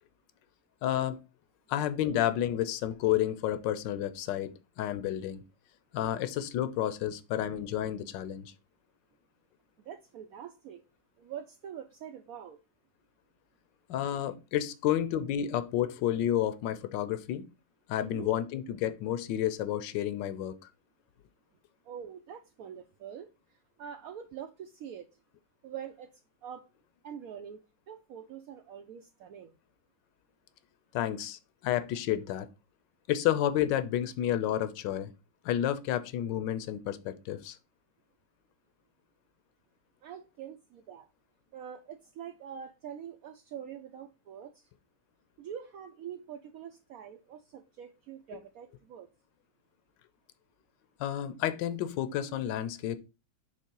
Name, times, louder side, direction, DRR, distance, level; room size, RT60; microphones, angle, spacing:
voice 1, 0.8-1.2 1.7-5.4 5.9-8.5 13.9-17.5 17.9-20.6 30.9-32.5 33.1-35.1 35.4-37.6 51.0-53.0, left 11 dB, 75° left, 1.3 m, -30 dB
voice 2, 9.8-10.8 11.2-12.6 18.0-18.3 21.8-25.1 25.6-26.1 26.4-26.6 27.0-27.6 27.9-29.6 40.0-41.1 41.5-44.7 45.4-49.1, right 8 dB, 80° right, 0.8 m, -44 dB
5.5 x 3.5 x 5.3 m
omnidirectional pair, 2.1 m